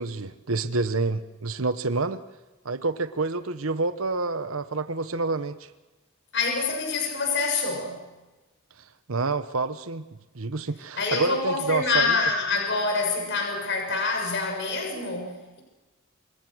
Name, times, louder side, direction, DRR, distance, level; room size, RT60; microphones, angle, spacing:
voice 1, 0.0-2.2 2.6-5.6 9.1-10.0 10.3-12.2, right 3 dB, 75° right, 1.1 m, -28 dB
voice 2, 6.3-8.0 11.0-15.6, left 4 dB, 55° left, 6.4 m, -26 dB
28.0 x 26.0 x 6.3 m
head